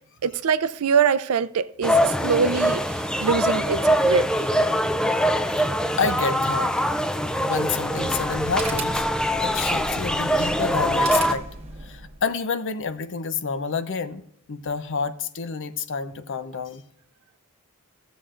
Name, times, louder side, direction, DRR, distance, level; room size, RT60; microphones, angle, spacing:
voice 1, 0.2-4.5, right 6 dB, 75° right, 0.5 m, -24 dB
sound 1, 1.8-11.3, equal, 5° left, 0.4 m, -23 dB
voice 2, 5.6-6.7 7.4-9.0 9.4-11.5 11.8-14.2 14.5-16.8, left 5 dB, 60° left, 0.6 m, -29 dB
sound 2, 7.8-12.2, right 3 dB, 25° right, 1.3 m, -37 dB
16.5 x 7.0 x 2.5 m
head